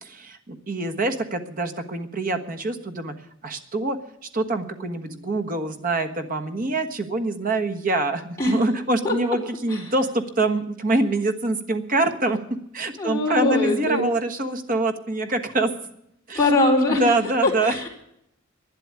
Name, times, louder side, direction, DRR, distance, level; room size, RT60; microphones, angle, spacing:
voice 1, 0.0-3.1 3.4-4.0 4.3-12.4 12.7-15.7 16.3-16.4 16.9-17.8, right 2 dB, 40° right, 6 dB, 1.4 m, -25 dB
voice 2, 13.0-14.0 16.3-17.0 17.4-17.9, left 2 dB, 15° left, -4 dB, 4.4 m, -21 dB
12.0 x 10.5 x 9.6 m, 0.77 s
head